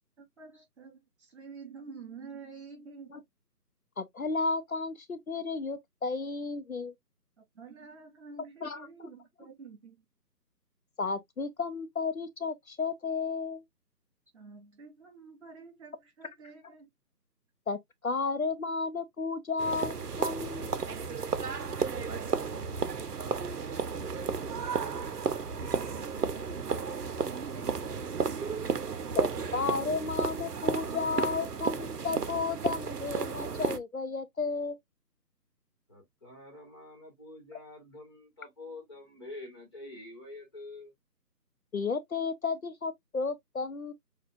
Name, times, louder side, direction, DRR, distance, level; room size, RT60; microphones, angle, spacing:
voice 1, 0.2-3.2 7.4-9.9 14.3-16.9, right 5 dB, 40° right, 3.4 m, -49 dB
voice 2, 4.0-6.9 8.6-9.1 11.0-13.6 17.7-20.8 29.1-34.8 41.7-43.9, left 4 dB, 60° left, 0.7 m, -33 dB
sound 1, 19.6-33.8, right 5 dB, 70° right, 0.8 m, -33 dB
voice 3, 35.9-40.9, left 2 dB, 15° left, 1.3 m, -47 dB
6.8 x 2.4 x 2.4 m
figure-of-eight pair, 155°, 49 cm